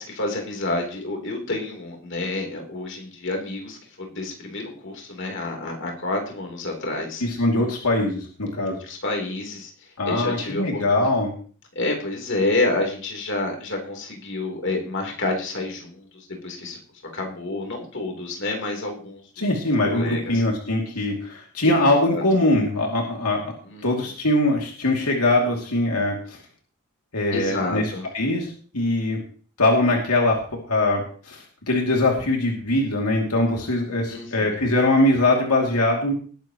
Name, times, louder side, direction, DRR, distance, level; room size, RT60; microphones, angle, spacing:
voice 1, 0.0-7.2 8.9-9.7 10.1-11.1 11.8-16.8 17.1-19.5 19.9-20.4 22.1-22.2 23.7-23.8 27.3-28.0 34.1-34.3, left 2 dB, 55° left, 1 dB, 3.6 m, -29 dB
voice 2, 7.2-8.8 10.0-11.3 19.4-23.5 23.8-26.4 27.1-29.2 29.6-30.4 30.7-36.1, left 2 dB, 85° left, 0 dB, 2.7 m, -22 dB
20.0 x 10.5 x 3.1 m, 0.43 s
head